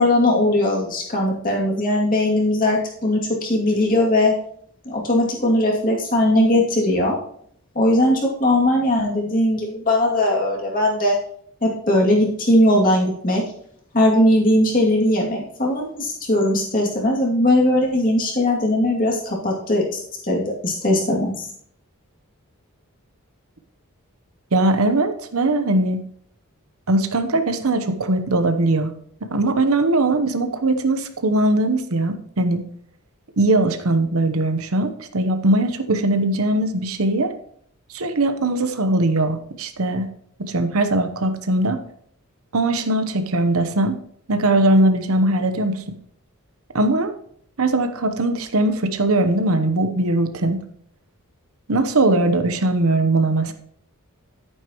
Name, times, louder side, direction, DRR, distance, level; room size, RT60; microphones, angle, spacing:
voice 1, 0.0-4.3 4.8-7.2 7.7-11.2 11.6-13.4 13.9-21.5, left 1 dB, 40° left, -2 dB, 2.4 m, -19 dB
voice 2, 24.5-26.0 26.9-28.9 29.3-32.6 33.4-37.3 37.9-40.1 40.4-41.8 42.5-43.9 44.3-45.9 46.7-47.1 47.6-50.6 51.7-53.5, right 2 dB, 70° right, 9 dB, 0.9 m, -20 dB
11.0 x 9.0 x 3.0 m, 0.64 s
head